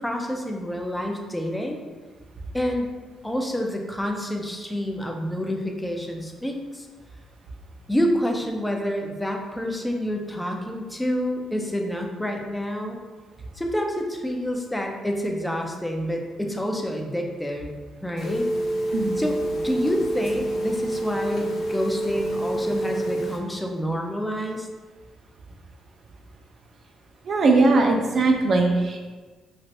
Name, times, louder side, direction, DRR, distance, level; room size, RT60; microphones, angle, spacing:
voice 1, 0.0-1.8 2.5-2.9 3.2-6.9 7.9-13.0 13.6-17.7 18.0-18.5 19.2-24.7, equal, 5° left, 2 dB, 0.4 m, -28 dB
Telephone, 18.2-23.4, right 1 dB, 70° left, 0.6 m, -27 dB
voice 2, 18.9-19.3 27.3-29.0, right 3 dB, 55° right, 2 dB, 0.5 m, -20 dB
3.2 x 2.5 x 2.6 m, 1.4 s
cardioid pair, 90°, 0 cm